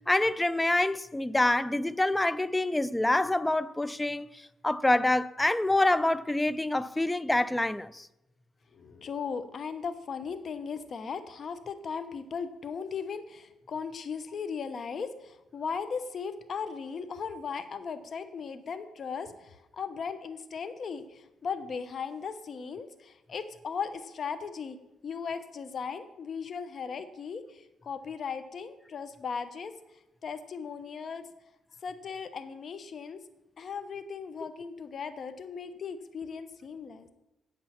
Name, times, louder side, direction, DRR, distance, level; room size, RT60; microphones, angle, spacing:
voice 1, 0.1-8.1 34.4-34.5, left 1 dB, 10° left, 0.4 m, -26 dB
voice 2, 8.7-24.8 25.0-29.7 30.2-31.3 31.8-33.2 33.6-37.1, left 6 dB, 50° left, 1.0 m, -37 dB
8.5 x 8.1 x 5.9 m
cardioid pair, 90°, 0 cm